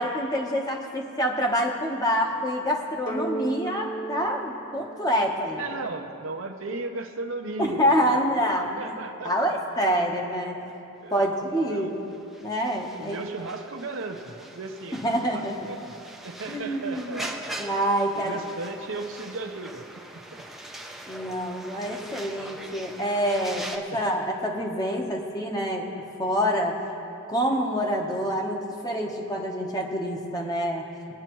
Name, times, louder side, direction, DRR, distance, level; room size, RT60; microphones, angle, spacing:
voice 1, 0.0-5.6 7.6-8.9 9.2-10.6 11.1-12.0 12.4-13.2 14.9-15.6 16.5-17.2 17.6-18.4 21.1-25.9 26.2-26.8 27.3-30.8, equal, 20° left, 0 dB, 1.0 m, -26 dB
sound 1, 3.1-5.6, right 2 dB, 55° left, 1.4 m, -35 dB
voice 2, 5.6-10.0 11.0-12.1 13.0-15.9 16.2-17.5 18.1-19.8 20.3-20.4 23.9-24.0, right 3 dB, 65° right, 5 dB, 0.8 m, -36 dB
sound 2, 11.4-23.8, right 1 dB, ahead, 0.6 m, -41 dB
21.0 x 9.5 x 3.1 m, 2.9 s
head